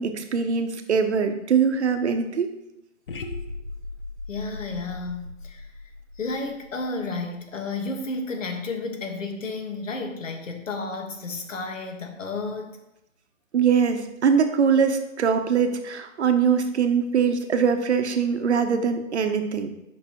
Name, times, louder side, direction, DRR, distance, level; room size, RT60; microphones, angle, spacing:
voice 1, 0.0-2.5 13.5-19.7, right 6 dB, 60° right, 7 dB, 0.8 m, -22 dB
sound 1, 3.1-7.2, left 3 dB, 45° left, 0.5 m, -38 dB
voice 2, 4.3-5.7 6.1-12.8, left 3 dB, 70° left, 4 dB, 1.4 m, -32 dB
7.6 x 5.5 x 2.9 m, 0.89 s
hypercardioid pair, 170°, 39 cm